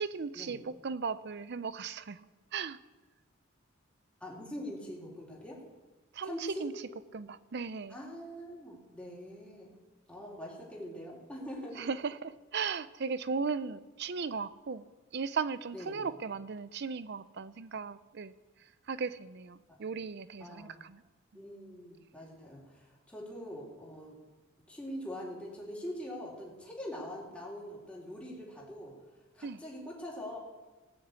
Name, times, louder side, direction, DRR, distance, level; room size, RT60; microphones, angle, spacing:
voice 1, 0.0-2.2 2.5-2.8 6.1-6.7 7.1-8.0 11.8-14.8 15.1-18.4 18.9-21.0 29.4-29.6, right 5 dB, 55° right, 15 dB, 0.5 m, -37 dB
voice 2, 4.2-5.6 6.2-6.7 7.9-9.7 10.1-11.9 15.7-16.1 19.7-19.8 20.4-20.8 21.3-24.2 24.7-28.9 29.3-30.4, equal, 5° left, -5 dB, 3.5 m, -43 dB
18.5 x 6.8 x 8.2 m, 1.2 s
head